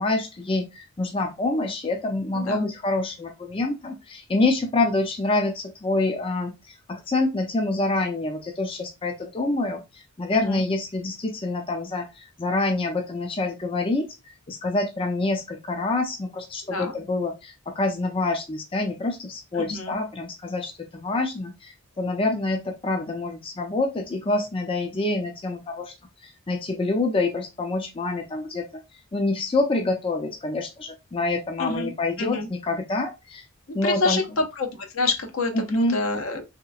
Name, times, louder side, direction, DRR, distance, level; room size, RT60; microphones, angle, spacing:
voice 1, 0.0-14.1 14.5-25.9 26.2-28.8 29.1-33.4 33.7-34.2 35.5-36.0, left 2 dB, 25° left, 0.4 m, -26 dB
voice 2, 2.3-2.7 10.3-10.6 16.7-17.0 19.5-20.0 31.6-31.9 32.2-32.5 33.8-36.4, left 3 dB, 75° left, 0.7 m, -27 dB
3.1 x 2.9 x 2.4 m
head